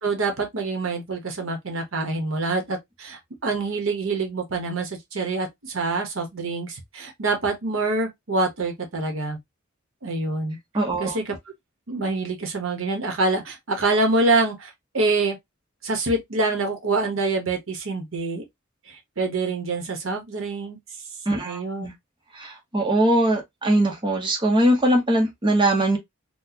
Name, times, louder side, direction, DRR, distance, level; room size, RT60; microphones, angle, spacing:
voice 1, 0.0-9.4 10.0-10.6 11.0-11.4 11.9-15.4 15.8-18.4 18.9-20.8 21.4-21.9, right 3 dB, 75° right, 1.0 m, -26 dB
voice 2, 10.7-11.2 21.3-21.9 22.3-26.0, right 1 dB, 25° right, 0.8 m, -21 dB
4.0 x 2.2 x 2.7 m
head